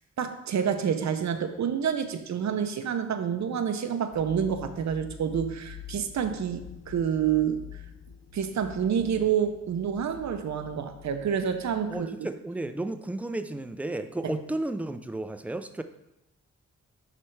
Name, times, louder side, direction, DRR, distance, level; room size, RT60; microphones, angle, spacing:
voice 1, 0.2-7.6 8.3-12.3 14.2-14.3, right 8 dB, 70° right, 8 dB, 0.6 m, -28 dB
sound 1, 4.1-12.0, left 10 dB, 65° left, 0.7 m, -46 dB
voice 2, 11.9-15.8, right 2 dB, 5° right, 9 dB, 0.3 m, -33 dB
9.9 x 3.3 x 3.2 m, 0.89 s
cardioid pair, 90°, 29 cm